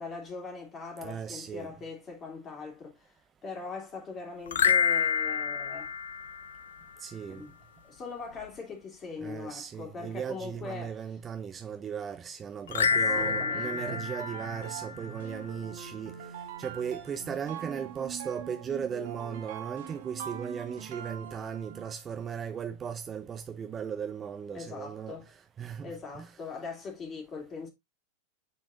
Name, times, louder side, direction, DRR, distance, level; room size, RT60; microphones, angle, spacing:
voice 1, 0.0-3.1 3.4-5.9 7.3-7.5 7.9-10.9 12.9-14.0 24.5-25.3 25.8-27.7, left 4 dB, 25° left, 2.7 m, -41 dB
voice 2, 1.0-1.7 7.0-7.4 9.2-16.1 16.6-25.2 25.6-26.3, right 7 dB, 20° right, 0.6 m, -37 dB
sound 1, 4.5-6.9 12.7-15.3, left 6 dB, 65° left, 0.5 m, -28 dB
sound 2, 12.9-22.1, right 9 dB, 55° right, 1.2 m, -43 dB
9.2 x 4.1 x 2.5 m
figure-of-eight pair, 90°, 0 cm